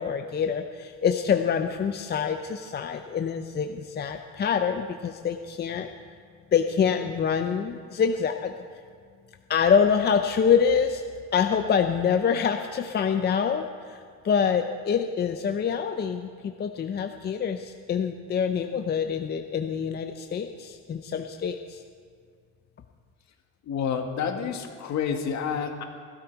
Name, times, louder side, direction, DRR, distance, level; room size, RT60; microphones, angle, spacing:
voice 1, 0.0-5.9 6.5-8.5 9.5-11.0 11.3-14.0 14.2-21.8, left 7 dB, 30° left, 6 dB, 0.6 m, -25 dB
voice 2, 23.7-25.8, left 7 dB, 60° left, 4 dB, 1.8 m, -29 dB
16.0 x 12.5 x 4.6 m, 2.1 s
cardioid pair, 130°, 32 cm